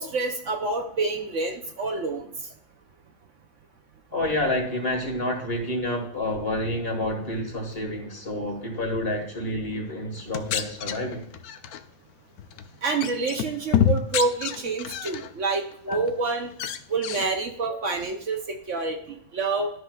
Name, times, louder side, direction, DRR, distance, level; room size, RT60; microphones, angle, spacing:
voice 1, 0.0-2.2 12.8-16.5 16.9-19.0 19.3-19.7, right 3 dB, 60° right, 4 dB, 1.0 m, -27 dB
voice 2, 4.1-11.2 15.9-16.0, left 1 dB, 40° left, 1 dB, 1.8 m, -29 dB
sound 1, 10.2-11.8 12.4-12.7 13.0-15.3 15.7-16.2 16.5-17.3, left 8 dB, 80° left, 1.1 m, -28 dB
12.5 x 6.0 x 2.3 m, 0.69 s
omnidirectional pair, 1.6 m